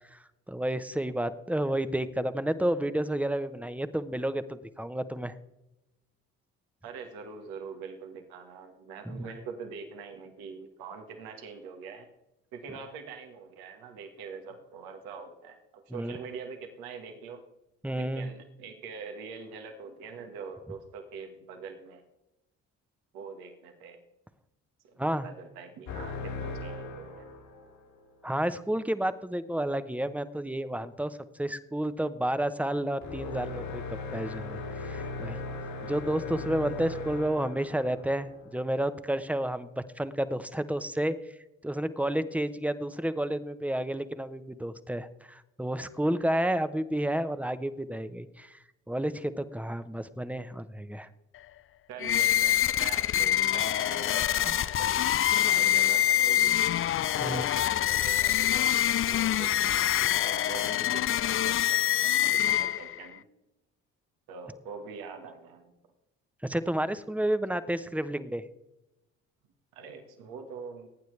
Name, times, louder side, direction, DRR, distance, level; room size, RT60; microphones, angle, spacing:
voice 1, 0.5-5.3 9.1-9.3 15.9-16.2 17.8-18.3 25.0-25.3 28.2-33.8 34.1-35.4 35.8-41.1 41.6-48.6 48.9-51.1 54.4-54.5 57.2-57.4 66.4-68.4, right 1 dB, 5° right, 12 dB, 0.9 m, -31 dB
voice 2, 6.8-12.1 12.5-17.4 18.0-22.0 23.1-24.0 24.8-27.3 51.9-54.9 55.2-56.6 57.2-63.2 64.3-65.7 69.7-70.9, right 5 dB, 80° right, 5 dB, 1.6 m, -44 dB
sound 1, 25.9-27.9 33.0-38.6, left 3 dB, 75° left, 2.8 m, -38 dB
sound 2, 52.0-63.0, left 11 dB, 40° left, 0.4 m, -25 dB
19.0 x 9.2 x 3.3 m, 0.93 s
hypercardioid pair, 55°, 36 cm